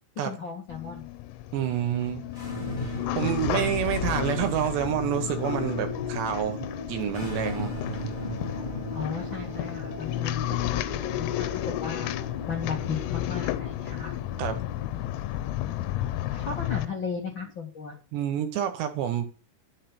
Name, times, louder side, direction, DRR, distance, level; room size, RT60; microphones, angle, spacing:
voice 1, 0.1-1.0 8.9-14.2 15.9-18.0, left 5 dB, 70° left, 0 dB, 1.1 m, -36 dB
sound 1, 0.7-16.9, left 14 dB, 90° left, 3.5 m, -33 dB
voice 2, 1.5-2.3 3.2-7.7 14.4-14.6 18.1-19.3, right 10 dB, 70° right, 7 dB, 3.0 m, -28 dB
sound 2, 2.2-17.5, left 2 dB, 35° left, 0.7 m, -37 dB
11.0 x 6.7 x 6.0 m, 0.35 s
omnidirectional pair, 5.8 m